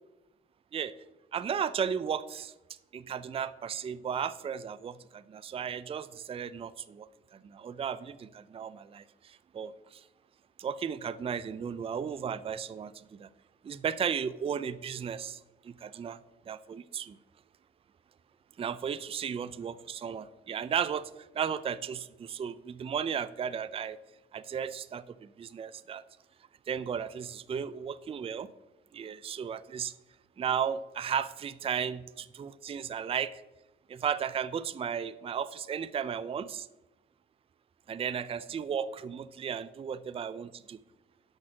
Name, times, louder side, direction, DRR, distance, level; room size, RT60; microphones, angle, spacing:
voice 1, 1.3-2.5 2.9-10.0 10.6-13.3 13.6-16.2 16.5-17.2 18.6-24.0 24.3-26.0 26.7-28.5 28.9-29.9 30.4-33.4 33.9-36.7 37.9-40.8, right 7 dB, 30° right, 15 dB, 0.4 m, -35 dB
8.7 x 6.2 x 6.0 m, 0.99 s
cardioid pair, 90°, 20 cm